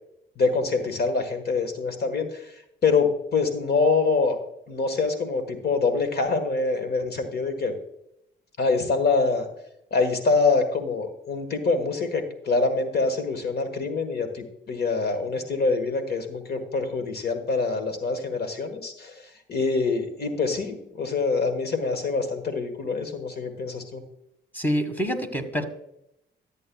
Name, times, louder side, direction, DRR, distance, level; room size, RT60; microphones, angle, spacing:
voice 1, 0.4-4.4 4.7-7.7 8.6-9.5 9.9-24.0, left 4 dB, 55° left, 6 dB, 1.4 m, -25 dB
voice 2, 24.5-25.6, equal, 10° left, 7 dB, 1.4 m, -26 dB
12.5 x 8.5 x 2.3 m, 0.79 s
cardioid pair, 90°, 20 cm